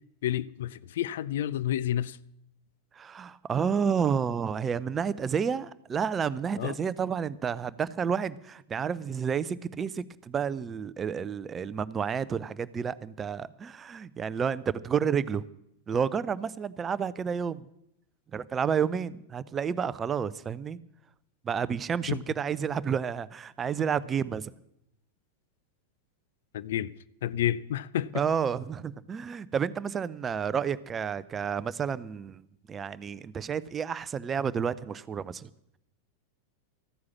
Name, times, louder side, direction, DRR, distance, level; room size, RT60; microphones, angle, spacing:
voice 1, 0.2-2.2 6.6-6.7 22.1-22.2 26.5-26.9 27.2-28.1, left 12 dB, 60° left, 0.4 m, -30 dB
voice 2, 3.0-15.4 15.9-17.6 18.3-20.8 21.4-24.5 28.1-35.5, right 7 dB, 20° right, 0.5 m, -30 dB
14.0 x 9.5 x 7.2 m
figure-of-eight pair, 90°, 0 cm